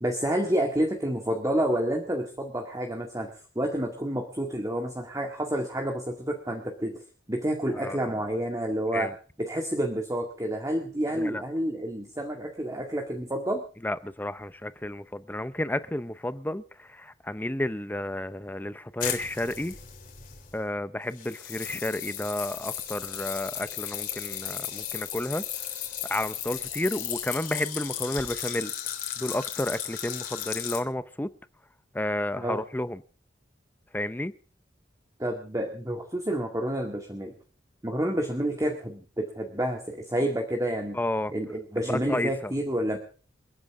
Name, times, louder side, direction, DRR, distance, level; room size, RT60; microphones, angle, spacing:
voice 1, 0.0-7.0 7.3-9.1 9.4-13.6 32.4-32.6 35.2-37.3 37.8-41.0 41.3-43.0, right 1 dB, 20° right, 2.0 m, -29 dB
voice 2, 7.7-8.1 8.9-9.1 11.1-11.4 13.8-19.8 20.5-25.4 26.0-28.7 29.2-31.3 31.9-33.0 33.9-34.3 40.9-41.3 41.9-42.5, left 1 dB, 10° left, 0.6 m, -31 dB
sound 1, 19.0-20.6 21.2-30.8, left 10 dB, 50° left, 3.5 m, -35 dB
29.0 x 9.7 x 3.7 m
head